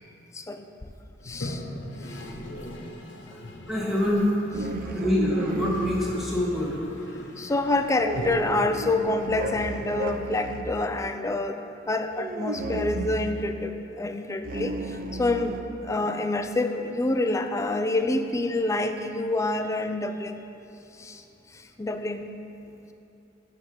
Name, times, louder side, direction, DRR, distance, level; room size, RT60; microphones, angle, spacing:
voice 1, 0.3-0.6 1.3-1.6 7.4-14.7 15.1-15.6 15.8-20.4 21.0-21.1 21.8-22.2, left 2 dB, 15° left, 7 dB, 0.4 m, -27 dB
Toilet flush, 1.2-10.3, left 1 dB, 70° left, 0.8 m, -40 dB
voice 2, 3.7-4.3 4.8-6.8, left 1 dB, ahead, -6 dB, 1.4 m, -25 dB
sound 1, 4.5-6.2 8.0-10.7 12.1-13.4 14.4-15.6, right 2 dB, 50° right, 0.4 m, -33 dB
9.7 x 3.6 x 6.3 m, 2.9 s
head